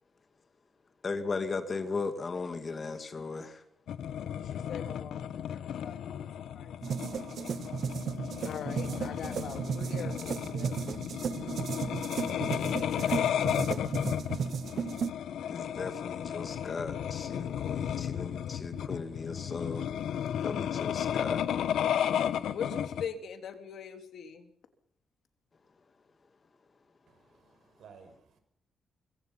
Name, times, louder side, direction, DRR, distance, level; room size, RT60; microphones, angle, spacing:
voice 1, 1.0-3.6 15.5-19.9 20.4-21.4, left 4 dB, 30° left, 2.3 m, -37 dB
sound 1, 3.9-23.1, left 9 dB, 80° left, 1.3 m, -34 dB
voice 2, 4.3-6.3 6.5-6.7 7.1-7.2 8.4-10.8 11.2-11.7 12.1-13.5 18.9-19.3 22.5-24.5, left 7 dB, 65° left, 3.3 m, -42 dB
sound 2, 6.8-15.1, right 7 dB, 50° right, 1.0 m, -35 dB
voice 3, 27.1-28.4, right 6 dB, 70° right, 6.4 m, -56 dB
25.5 x 24.5 x 5.8 m
wide cardioid pair, 165°, 0 cm